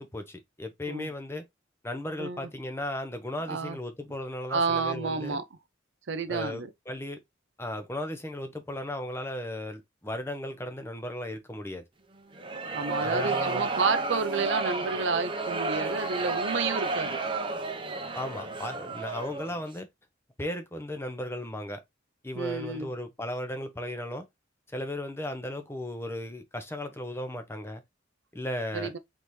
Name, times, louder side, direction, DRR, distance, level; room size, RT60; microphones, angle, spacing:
voice 1, 0.0-1.4 1.8-5.4 6.3-7.2 7.6-11.8 13.0-13.7 18.1-19.9 20.4-21.8 22.2-24.3 24.7-27.8 28.3-28.9, left 1 dB, 15° left, 0.7 m, -36 dB
voice 2, 4.5-5.4 6.1-6.7 12.7-17.2 22.3-22.9 28.7-29.0, right 4 dB, 70° right, 0.6 m, -30 dB
sound 1, 12.3-19.6, right 3 dB, 25° right, 0.7 m, -32 dB
4.1 x 3.4 x 3.1 m
head